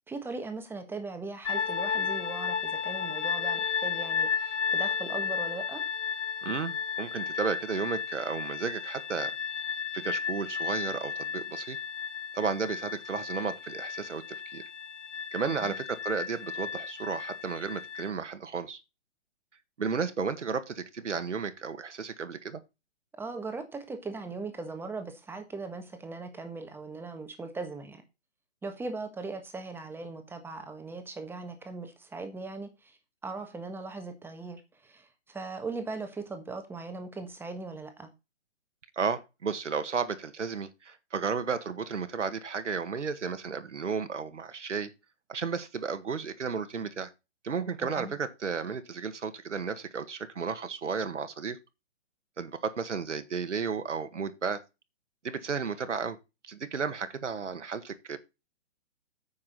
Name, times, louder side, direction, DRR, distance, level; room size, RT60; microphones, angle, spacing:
voice 1, 0.1-5.8 15.5-15.7 23.2-28.0 28.6-33.0 33.2-38.1 47.8-48.1, right 3 dB, 5° right, 1.4 m, -39 dB
sound 1, 1.4-18.1, left 7 dB, 80° left, 1.0 m, -33 dB
voice 2, 6.4-9.4 9.9-11.8 12.3-14.6 15.3-18.8 19.8-22.6 38.9-44.9 45.3-47.1 47.4-51.6 52.4-54.6 55.2-56.2 56.4-58.2, right 5 dB, 80° right, 1.7 m, -33 dB
9.7 x 7.4 x 4.1 m
figure-of-eight pair, 135°, 36 cm